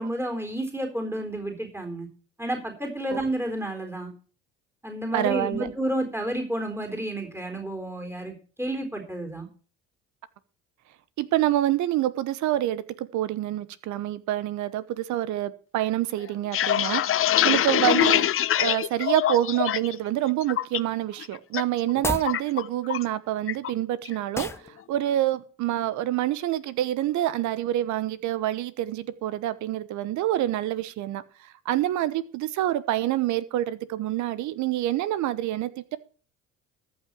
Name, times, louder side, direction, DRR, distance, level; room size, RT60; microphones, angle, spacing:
voice 1, 0.0-2.1 2.4-4.1 4.8-9.5, right 1 dB, 10° right, 3.8 m, -31 dB
voice 2, 5.1-5.7 11.2-18.3 18.6-36.0, right 13 dB, 65° right, 1.1 m, -27 dB
sound 1, 16.3-20.0 20.3-20.8 21.2-21.6 21.9-23.1 23.5-23.7 24.1-24.5, left 12 dB, 45° left, 0.6 m, -24 dB
sound 2, 21.9-22.4 24.3-24.7, left 2 dB, 10° left, 0.8 m, -31 dB
14.0 x 5.9 x 7.5 m
hypercardioid pair, 70°, 31 cm